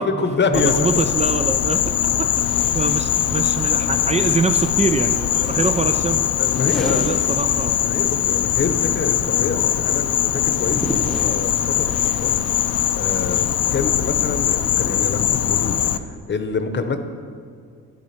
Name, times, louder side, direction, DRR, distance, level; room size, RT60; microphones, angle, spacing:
voice 1, 0.0-0.7 6.4-7.2 7.8-10.1 10.3-12.3 13.0-17.0, left 4 dB, 35° left, 8 dB, 0.9 m, -26 dB
Insect, 0.5-16.0, left 10 dB, 55° left, 0.5 m, -21 dB
voice 2, 0.5-1.8 2.2-2.4 2.7-6.3 6.8-7.8, right 4 dB, 25° right, 8 dB, 0.4 m, -24 dB
sound 1, 2.3-8.1 8.4-14.2, equal, ahead, 1.1 m, -36 dB
11.0 x 7.6 x 5.7 m, 2.2 s
cardioid pair, 90°, 30 cm